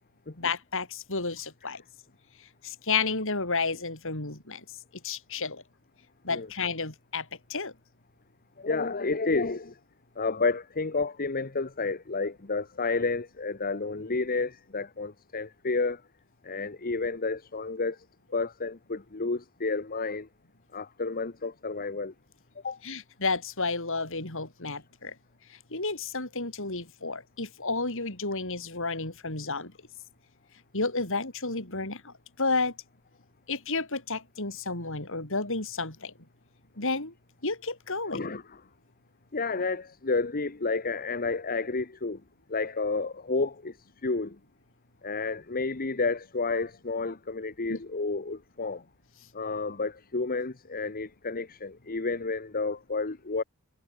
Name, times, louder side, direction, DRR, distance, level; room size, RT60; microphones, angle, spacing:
voice 1, 0.4-1.8 2.6-4.6 5.0-5.6 6.2-7.7 22.8-25.1 25.5-29.7 30.7-32.8 33.5-36.1 36.8-37.1 37.4-38.2 47.7-47.8, left 3 dB, 65° left, 7.4 m, -31 dB
voice 2, 8.6-9.8 10.2-16.0 16.4-18.0 18.3-20.3 20.7-22.1 22.6-22.8 38.1-38.4 39.3-42.2 42.5-43.8 44.0-44.4 45.0-48.8 49.3-53.4, left 3 dB, 45° left, 1.2 m, -30 dB
head